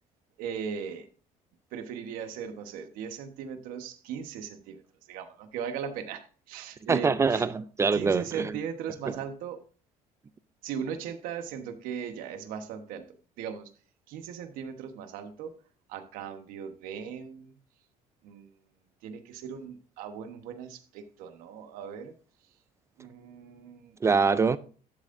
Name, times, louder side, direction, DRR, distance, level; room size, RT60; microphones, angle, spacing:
voice 1, 0.4-1.1 1.7-4.8 5.1-7.5 7.9-9.6 10.6-13.7 14.1-15.6 15.9-17.6 18.2-18.5 19.0-22.1 23.0-24.0, right 7 dB, 85° right, 1.2 m, -38 dB
voice 2, 6.9-8.5 24.0-24.6, right 5 dB, 20° right, 0.3 m, -24 dB
11.5 x 7.3 x 2.6 m
cardioid pair, 150°, 14 cm